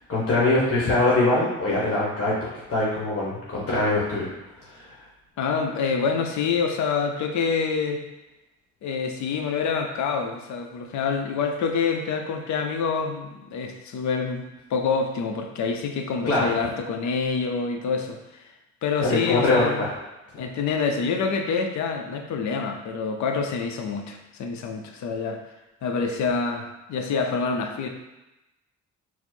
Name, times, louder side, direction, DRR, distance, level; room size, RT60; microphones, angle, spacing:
voice 1, 0.1-4.3 4.7-4.9 16.2-16.5 19.1-19.9, left 2 dB, 50° left, -6 dB, 1.1 m, -23 dB
voice 2, 5.4-8.0 8.8-14.4 14.7-18.5 18.8-19.8 20.4-25.4 25.8-27.9, left 5 dB, 70° left, 4 dB, 0.6 m, -26 dB
4.2 x 2.0 x 4.4 m, 0.98 s
cardioid pair, 90°, 30 cm